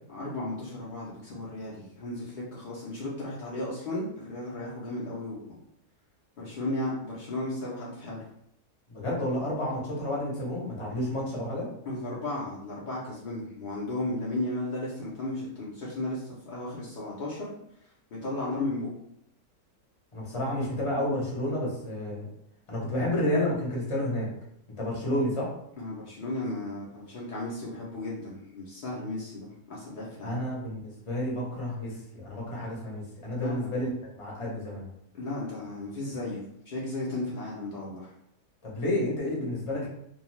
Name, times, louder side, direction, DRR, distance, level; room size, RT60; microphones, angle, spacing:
voice 1, 0.1-5.6 6.4-8.3 11.9-17.5 18.2-18.9 25.8-30.4 33.3-33.7 35.2-38.1, left 2 dB, 70° left, -6 dB, 0.4 m, -35 dB
voice 2, 8.9-11.7 20.1-22.3 22.7-24.3 24.8-25.5 30.2-33.9 34.2-34.8 38.6-39.9, left 1 dB, 30° left, -5 dB, 0.7 m, -30 dB
2.6 x 2.2 x 3.0 m, 0.74 s
omnidirectional pair, 1.5 m